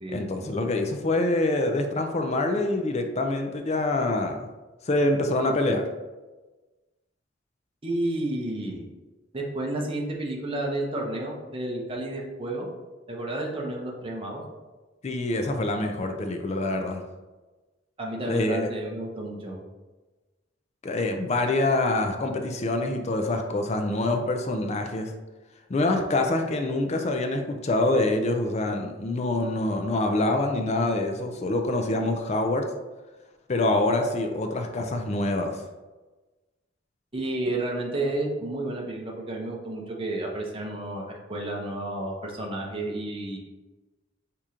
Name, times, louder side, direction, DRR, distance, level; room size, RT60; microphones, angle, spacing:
voice 1, 0.1-4.4 4.9-5.9 15.0-17.0 18.3-18.7 20.8-25.1 25.7-32.6 33.5-35.6, left 2 dB, 35° left, 5 dB, 0.4 m, -25 dB
voice 2, 7.8-8.9 9.3-12.7 13.1-14.4 18.0-19.6 37.1-43.4, right 1 dB, 30° right, -1 dB, 0.8 m, -31 dB
4.8 x 2.9 x 3.7 m, 1.2 s
head